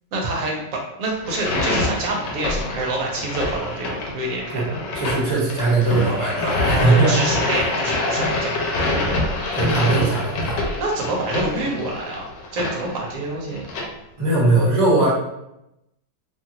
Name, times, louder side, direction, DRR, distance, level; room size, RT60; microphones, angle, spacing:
voice 1, 0.1-4.8 6.7-8.9 10.8-13.7, right 2 dB, 60° right, -1 dB, 1.0 m, -27 dB
sound 1, 1.2-13.8, left 2 dB, 85° left, 1.3 m, -25 dB
voice 2, 4.9-7.2 9.5-10.6 14.2-15.1, right 2 dB, 25° right, -6 dB, 0.7 m, -19 dB
3.0 x 2.4 x 2.8 m, 0.86 s
omnidirectional pair, 1.9 m